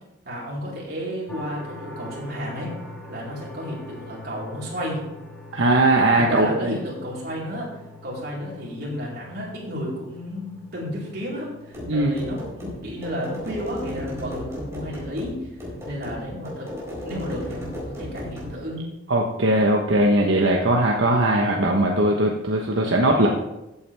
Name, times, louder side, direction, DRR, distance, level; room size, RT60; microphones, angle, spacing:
voice 1, 0.2-2.8 3.1-5.0 6.2-7.7 8.0-15.4 15.8-18.9, equal, 55° right, -5 dB, 4.2 m, -32 dB
sound 1, 1.3-16.1, left 1 dB, 5° left, 1.9 m, -44 dB
voice 2, 5.5-6.8 11.9-12.1 19.1-23.3, right 1 dB, 80° right, 0 dB, 1.1 m, -19 dB
sound 2, 11.7-18.6, equal, 15° right, 4.3 m, -35 dB
14.5 x 8.6 x 3.4 m, 0.94 s
head